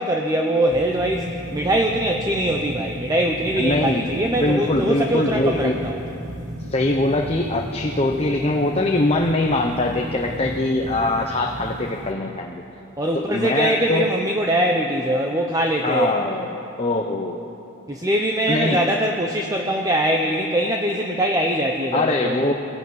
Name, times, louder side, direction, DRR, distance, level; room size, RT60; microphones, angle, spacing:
voice 1, 0.0-6.0 13.0-16.1 17.9-22.5, right 1 dB, 15° right, 2 dB, 1.0 m, -22 dB
sound 1, 0.7-12.1, right 1 dB, 35° right, 1.7 m, -35 dB
voice 2, 3.6-4.1 4.3-5.8 6.7-12.6 13.1-14.1 15.8-16.5 16.8-17.4 18.5-18.9 21.9-22.5, left 2 dB, 30° left, 2 dB, 1.0 m, -22 dB
22.5 x 14.5 x 9.5 m, 2.9 s
head